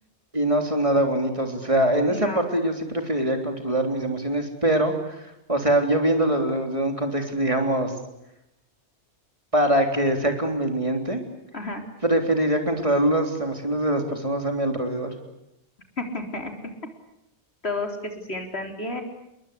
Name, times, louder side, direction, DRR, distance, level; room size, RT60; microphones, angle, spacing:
voice 1, 0.3-4.9 5.5-7.9 9.5-11.2 12.0-15.1, right 1 dB, 30° right, 4 dB, 3.7 m, -23 dB
voice 2, 2.1-2.4 11.5-11.8 16.0-16.5 17.6-19.0, left 2 dB, 65° left, 4 dB, 4.2 m, -31 dB
29.5 x 22.0 x 8.4 m, 0.83 s
omnidirectional pair, 1.2 m